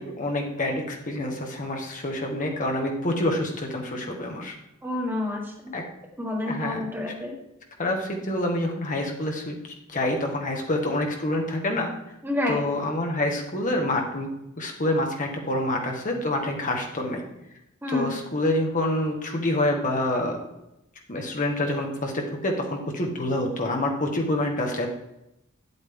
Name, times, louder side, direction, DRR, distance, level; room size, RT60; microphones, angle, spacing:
voice 1, 0.0-4.5 5.7-5.8 6.5-6.8 7.8-9.6 9.9-11.9 12.5-14.3 14.6-17.2 17.9-20.4 21.1-24.9, left 1 dB, 40° left, 2 dB, 1.3 m, -27 dB
voice 2, 4.8-5.5 6.2-7.4 12.2-12.6 17.8-18.2, left 2 dB, 10° right, -1 dB, 1.8 m, -28 dB
9.5 x 8.1 x 3.5 m, 0.87 s
head